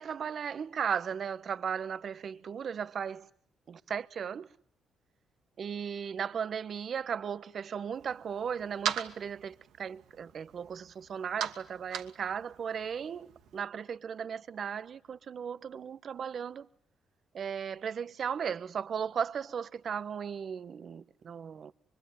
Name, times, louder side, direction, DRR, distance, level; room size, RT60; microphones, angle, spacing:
voice 1, 0.0-3.3 3.7-4.5 5.6-16.7 17.3-21.7, right 7 dB, 55° right, 1.3 m, -36 dB
sound 1, 7.9-13.6, right 9 dB, 85° right, 2.5 m, -41 dB
24.5 x 24.0 x 9.7 m
cardioid pair, 90°, 0 cm